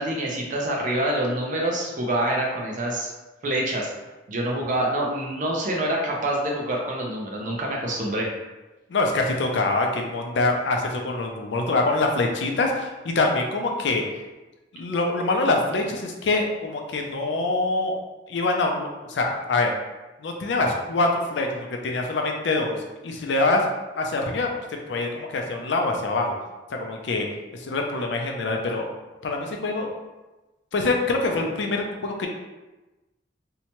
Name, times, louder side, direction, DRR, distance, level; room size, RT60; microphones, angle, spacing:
voice 1, 0.0-3.1 3.4-3.9 4.3-8.3, right 1 dB, 45° right, -1 dB, 0.5 m, -26 dB
voice 2, 8.9-14.0 14.7-18.0 18.3-19.7 20.2-22.8 23.0-23.7 24.0-24.5 24.9-26.3 26.7-27.3 27.5-28.9 29.2-29.9 30.7-32.3, left 2 dB, 70° left, 2 dB, 0.5 m, -24 dB
2.7 x 2.2 x 2.9 m, 1.1 s
head